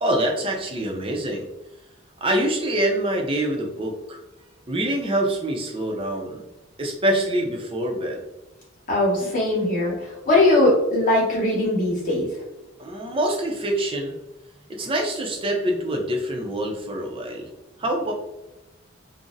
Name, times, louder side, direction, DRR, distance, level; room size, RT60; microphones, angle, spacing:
voice 1, 0.0-1.5 2.2-4.2 4.7-6.4 6.8-8.2 12.8-14.2 14.7-17.5 17.8-18.1, right 1 dB, 25° right, 0 dB, 0.5 m, -25 dB
voice 2, 8.9-12.3, left 1 dB, 40° left, -5 dB, 1.0 m, -20 dB
3.8 x 2.0 x 2.5 m, 0.96 s
head